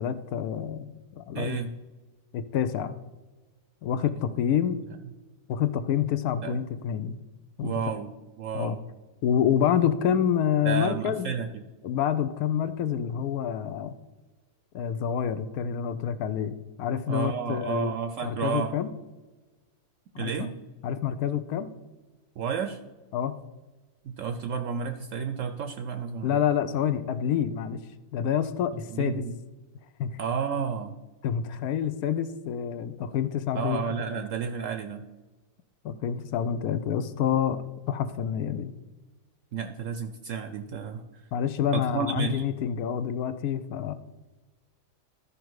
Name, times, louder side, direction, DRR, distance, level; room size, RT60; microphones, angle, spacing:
voice 1, 0.0-1.6 2.3-2.9 3.8-4.8 5.5-7.2 7.6-7.7 8.5-8.8 9.2-11.3 11.8-13.9 14.7-17.9 18.2-18.9 20.1-20.5 20.8-21.7 23.1-23.3 26.2-27.8 28.1-29.2 30.0-30.2 31.2-33.8 34.1-34.2 35.8-37.6 37.9-38.7 41.3-43.9, left 9 dB, 75° left, 12 dB, 1.0 m, -27 dB
voice 2, 1.3-1.7 6.4-6.6 7.6-8.8 10.6-11.7 17.1-18.7 20.2-20.5 22.4-22.8 24.0-26.4 28.9-29.3 30.2-31.0 33.5-35.1 39.5-41.0 41.7-42.5, right 6 dB, 65° right, 9 dB, 0.8 m, -31 dB
12.5 x 5.1 x 4.7 m, 1.2 s
omnidirectional pair, 1.6 m